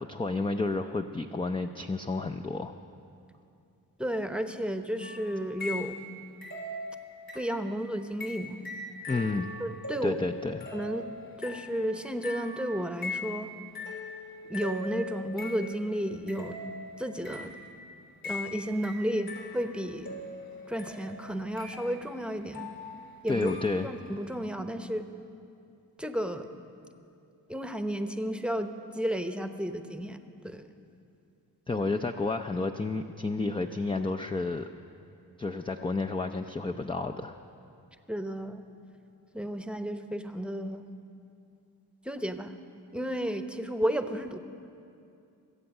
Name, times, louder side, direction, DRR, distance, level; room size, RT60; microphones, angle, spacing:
voice 1, 0.0-2.7 9.1-9.5 10.0-10.7 23.3-23.9 31.7-34.7 35.4-37.4, left 3 dB, 15° left, 5 dB, 0.5 m, -31 dB
voice 2, 4.0-6.0 7.3-8.6 9.6-10.2 10.7-11.1 11.4-13.5 14.5-16.6 17.0-17.6 18.2-20.2 20.7-22.7 23.2-23.6 23.8-25.1 26.0-26.5 27.5-30.2 30.4-30.7 38.1-38.6 39.3-40.8 42.0-42.5 42.9-44.4, equal, ahead, 8 dB, 0.9 m, -32 dB
sound 1, 5.0-6.1 6.4-7.7 8.2-15.9 16.3-17.7 18.2-24.0, left 2 dB, 55° left, 2.9 m, -41 dB
22.5 x 7.8 x 5.5 m, 2.5 s
supercardioid pair, 50°, 42 cm